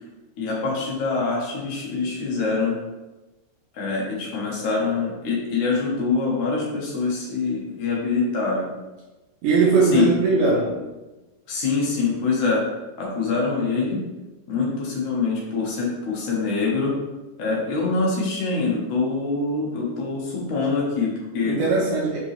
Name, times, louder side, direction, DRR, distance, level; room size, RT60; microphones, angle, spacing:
voice 1, 0.4-2.7 3.7-8.7 9.9-10.1 11.5-12.6 13.0-14.0 14.5-16.9 17.4-21.6, left 4 dB, 65° left, -3 dB, 2.1 m, -24 dB
voice 2, 9.4-10.7 21.4-22.2, right 4 dB, 70° right, -5 dB, 2.0 m, -19 dB
6.2 x 5.2 x 3.3 m, 1.1 s
omnidirectional pair, 4.9 m